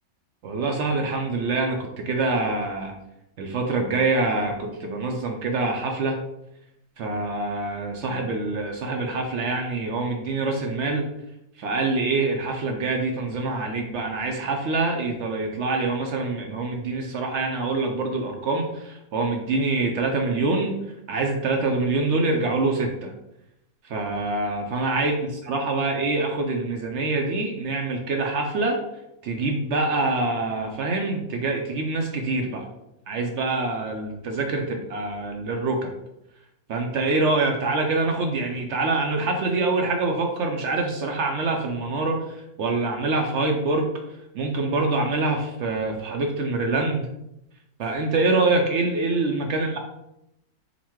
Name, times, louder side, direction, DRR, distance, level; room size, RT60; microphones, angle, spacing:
voice 1, 0.4-2.9 3.4-6.2 7.0-11.1 11.6-20.7 21.1-23.1 23.9-25.2 25.4-28.8 29.2-32.6 33.1-35.9 36.7-43.8 44.3-47.1 47.8-49.8, right 3 dB, 70° right, 2 dB, 0.7 m, -25 dB
4.0 x 2.2 x 4.4 m, 0.85 s
omnidirectional pair, 1.7 m